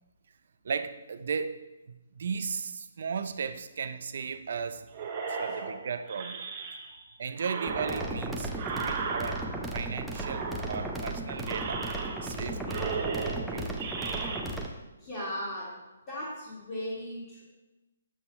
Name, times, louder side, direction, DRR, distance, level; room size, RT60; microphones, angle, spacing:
voice 1, 0.6-1.7 2.1-4.9 5.3-6.5 7.2-11.9 12.2-12.8 13.1-13.8, right 6 dB, 60° right, 11 dB, 0.4 m, -36 dB
sound 1, 4.9-7.0 7.4-9.8 10.1-11.0 11.4-12.4 12.6-14.4, right 5 dB, 30° right, 0.8 m, -36 dB
sound 2, 7.7-14.7, right 1 dB, ahead, 0.5 m, -36 dB
voice 2, 15.0-15.8 16.1-17.4, equal, 20° left, -10 dB, 1.8 m, -37 dB
7.2 x 2.7 x 5.3 m, 1.0 s
hypercardioid pair, 155°, 0 cm